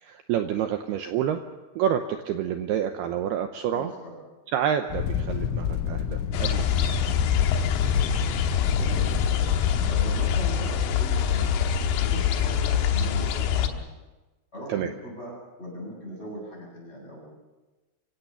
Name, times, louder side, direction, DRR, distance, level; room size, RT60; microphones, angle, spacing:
voice 1, 0.0-1.4 1.8-3.9 4.5-6.7 14.7-14.9, right 9 dB, 80° right, 7 dB, 2.4 m, -28 dB
voice 2, 3.7-4.2 8.7-9.4 9.9-11.6 12.0-13.8 14.5-17.3, equal, 10° left, -2 dB, 8.0 m, -39 dB
sound 1, 4.9-10.0, left 8 dB, 90° left, 3.7 m, -29 dB
sound 2, 6.3-13.7, left 8 dB, 70° left, 2.8 m, -24 dB
26.5 x 17.0 x 7.0 m, 1.2 s
omnidirectional pair, 5.5 m